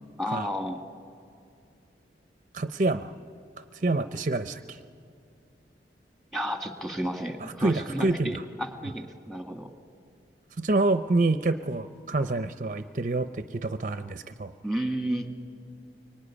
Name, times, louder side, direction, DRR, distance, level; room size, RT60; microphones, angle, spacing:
voice 1, 0.2-0.8 6.3-9.7 14.6-15.3, equal, ahead, 5 dB, 1.6 m, -32 dB
voice 2, 2.5-3.1 3.7-4.8 7.4-8.4 10.6-14.5, right 2 dB, 45° right, 10 dB, 0.6 m, -27 dB
24.0 x 23.5 x 10.0 m, 2.3 s
head